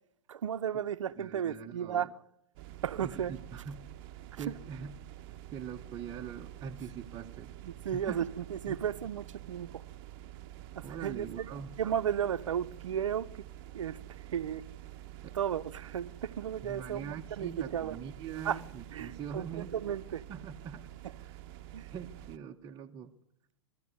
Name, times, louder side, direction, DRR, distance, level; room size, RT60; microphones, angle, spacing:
voice 1, 0.3-2.2 2.8-3.4 4.3-4.5 7.6-9.8 10.7-11.5 11.8-13.4 13.7-14.7 15.3-18.0 18.4-18.6 18.9-20.2 21.0-21.1 21.7-21.9, right 9 dB, 75° right, 0.9 m, -34 dB
voice 2, 1.2-2.1 3.0-3.9 4.4-5.0 5.5-7.5 7.9-8.2 8.7-8.8 10.8-11.7 15.2-15.4 16.6-19.7 20.3-21.4 21.9-23.1, right 7 dB, 25° right, 1.1 m, -43 dB
sound 1, 2.5-22.4, right 13 dB, 50° right, 1.0 m, -48 dB
22.0 x 14.0 x 9.5 m
hypercardioid pair, 115°, 16 cm